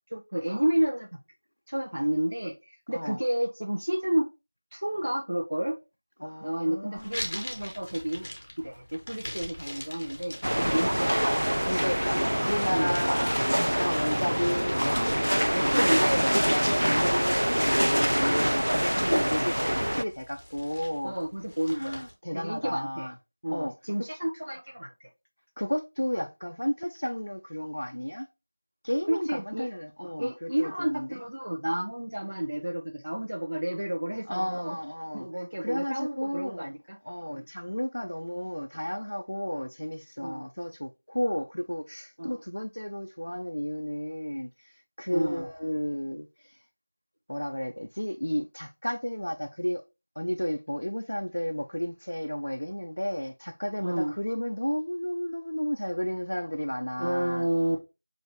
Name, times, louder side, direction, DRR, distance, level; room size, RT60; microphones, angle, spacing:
voice 1, 0.1-1.2 1.7-4.3 4.7-5.7 6.4-8.3 8.6-11.4 12.7-13.0 15.5-16.8 18.9-19.4 21.0-22.0 22.3-23.1 23.4-25.1 29.1-29.7 30.2-34.8 35.1-37.0 37.3-37.5 40.2-40.5 42.2-42.4 45.1-45.5 53.8-54.1 57.0-57.8, right 1 dB, 50° right, 0.7 m, -30 dB
voice 2, 6.2-7.2 11.1-13.5 13.8-21.1 21.7-23.1 23.5-23.7 25.6-28.3 28.8-31.2 34.3-35.3 35.6-36.7 37.0-46.6 47.3-49.8 50.2-57.5, equal, 65° left, 0.4 m, -32 dB
sound 1, 7.0-22.1, left 1 dB, 30° left, 0.9 m, -44 dB
sound 2, 10.4-20.0, equal, 75° right, 0.3 m, -25 dB
5.7 x 2.6 x 3.0 m
figure-of-eight pair, 175°, 0 cm